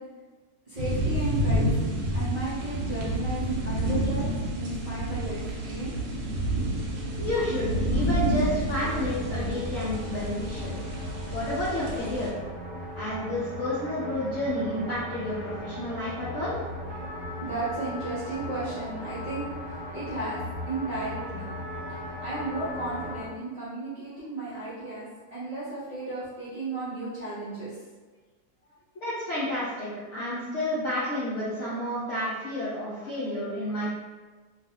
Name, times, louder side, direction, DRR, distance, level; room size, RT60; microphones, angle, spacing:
voice 1, 0.7-4.3 4.6-5.9 17.4-19.4 19.9-20.4 20.7-21.7 22.2-25.0 25.3-27.8 32.9-33.3 33.8-33.9, right 2 dB, 40° right, -13 dB, 0.6 m, -34 dB
sound 1, 0.8-12.3, right 1 dB, 90° right, 1.1 m, -29 dB
sound 2, 4.3-23.2, left 1 dB, 65° right, 1.0 m, -39 dB
voice 2, 7.2-10.7 11.3-12.4 13.0-16.5 29.0-33.9, left 1 dB, 60° left, -9 dB, 0.9 m, -30 dB
Trumpet, 16.9-23.4, left 2 dB, 10° left, 0.9 m, -42 dB
2.6 x 2.4 x 2.7 m, 1.3 s
omnidirectional pair, 1.6 m